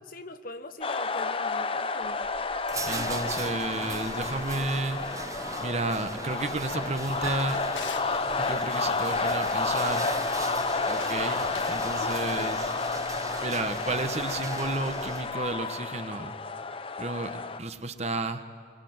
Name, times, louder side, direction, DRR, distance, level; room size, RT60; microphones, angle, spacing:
voice 1, 0.0-2.4 12.0-12.6 12.9-13.1, left 2 dB, 50° left, 9 dB, 1.2 m, -42 dB
sound 1, 0.8-17.6, left 3 dB, 30° left, 0.7 m, -31 dB
sound 2, 2.0-15.6, right 2 dB, 15° right, 0.9 m, -38 dB
voice 2, 2.8-5.0 5.6-7.7 8.3-10.1 10.9-12.7 13.4-16.3 17.0-18.4, right 2 dB, 35° right, 8 dB, 1.3 m, -32 dB
Drawer open or close, 7.0-8.2 10.8-11.9, left 6 dB, 85° left, 1.7 m, -43 dB
26.0 x 24.0 x 9.6 m, 2.2 s
head